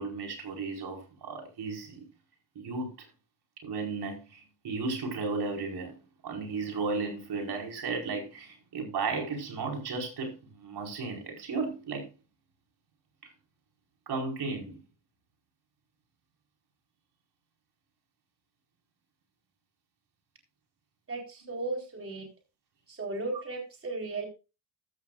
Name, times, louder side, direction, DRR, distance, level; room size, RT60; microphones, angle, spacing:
voice 1, 0.0-2.0 2.5-3.1 3.6-5.9 6.2-12.1 14.1-14.8, right 4 dB, 55° right, 1 dB, 5.0 m, -34 dB
voice 2, 21.1-22.3 22.9-24.2, right 2 dB, 30° right, 1 dB, 4.3 m, -35 dB
14.0 x 13.0 x 2.5 m, 0.30 s
supercardioid pair, 70°, 45 cm